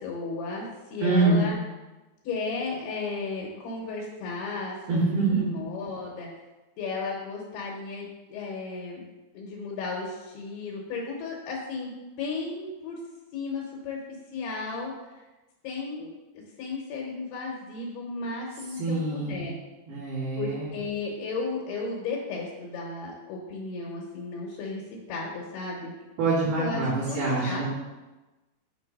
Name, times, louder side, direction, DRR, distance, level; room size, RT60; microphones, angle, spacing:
voice 1, 0.0-1.6 2.2-6.3 6.8-9.0 9.3-11.9 12.2-13.0 13.3-14.0 14.3-14.9 15.6-16.1 16.6-19.6 20.4-24.8 25.1-25.9 26.6-27.6, left 4 dB, 85° left, -2 dB, 3.2 m, -34 dB
voice 2, 1.0-1.4 4.9-5.7 18.8-19.4 19.9-20.7 26.2-27.6, right 3 dB, 85° right, -15 dB, 4.8 m, -25 dB
8.8 x 3.3 x 5.4 m, 1.1 s
omnidirectional pair, 4.4 m